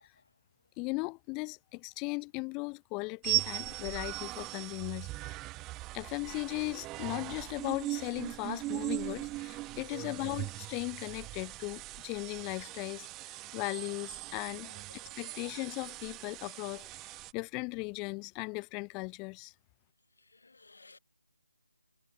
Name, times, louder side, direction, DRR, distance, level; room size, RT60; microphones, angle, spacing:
voice 1, 0.8-5.4 5.9-14.7 15.2-19.5, left 30 dB, 15° left, 1.1 m, -38 dB
sound 1, 3.2-17.3, right 19 dB, 15° right, 0.9 m, -39 dB
voice 2, 15.0-15.4 20.3-21.0, left 3 dB, 65° left, 1.5 m, -58 dB
figure-of-eight pair, 155°, 0 cm